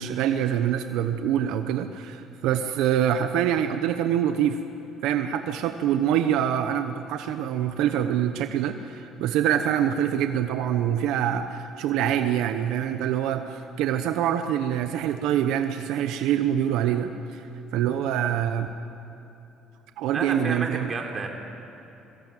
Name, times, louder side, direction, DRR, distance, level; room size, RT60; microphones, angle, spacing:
voice 1, 0.0-4.6 5.0-17.4 17.7-18.7 20.0-20.9, right 10 dB, 80° right, 7 dB, 1.0 m, -25 dB
voice 2, 20.1-21.3, right 4 dB, 35° right, 2 dB, 3.6 m, -30 dB
22.0 x 20.5 x 9.3 m, 2.9 s
cardioid pair, 135°, 0 cm